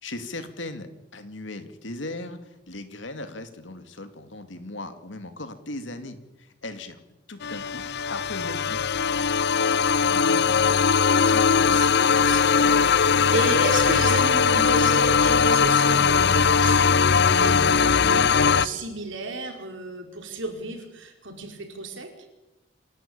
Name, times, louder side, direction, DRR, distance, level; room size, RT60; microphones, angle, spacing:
voice 1, 0.0-7.0 7.3-8.8, left 2 dB, 75° left, 9 dB, 2.4 m, -38 dB
sound 1, 7.4-18.7, left 6 dB, 60° left, 0.7 m, -20 dB
voice 2, 10.0-10.4 11.0-22.1, right 2 dB, 80° right, 4 dB, 4.7 m, -33 dB
28.0 x 12.5 x 8.8 m, 1.0 s
head